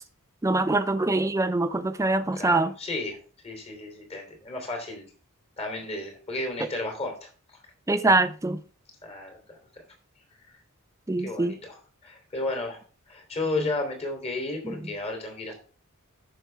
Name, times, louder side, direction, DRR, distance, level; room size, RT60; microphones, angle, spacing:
voice 1, 0.4-2.7 7.9-8.6 11.1-11.5 14.6-14.7, right 2 dB, 15° right, 0.5 m, -24 dB
voice 2, 2.3-3.2 3.4-5.1 5.6-7.3 9.0-9.8 11.2-12.8 13.1-15.5, left 2 dB, 30° left, 3.1 m, -33 dB
14.0 x 5.8 x 3.4 m
head